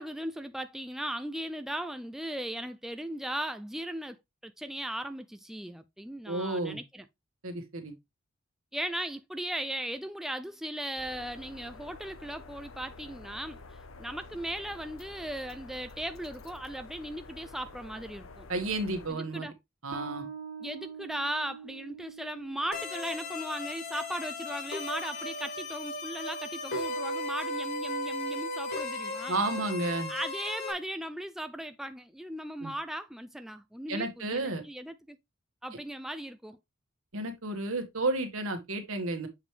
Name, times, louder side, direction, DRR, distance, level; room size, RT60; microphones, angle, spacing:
voice 1, 0.0-4.2 4.4-7.0 8.7-18.5 19.1-19.5 20.6-29.4 30.1-35.2 35.6-36.6, right 1 dB, ahead, 0.4 m, -37 dB
voice 2, 6.3-6.8 7.4-7.9 18.5-19.5 19.8-20.3 29.3-30.1 32.6-32.7 33.9-34.6 37.1-39.3, right 2 dB, 75° right, 1.7 m, -32 dB
sound 1, 11.0-19.1, left 3 dB, 70° left, 0.9 m, -49 dB
Bass guitar, 19.9-27.1, right 6 dB, 60° right, 1.7 m, -47 dB
sound 2, 22.7-30.7, left 2 dB, 55° left, 1.6 m, -36 dB
7.3 x 5.1 x 3.2 m
head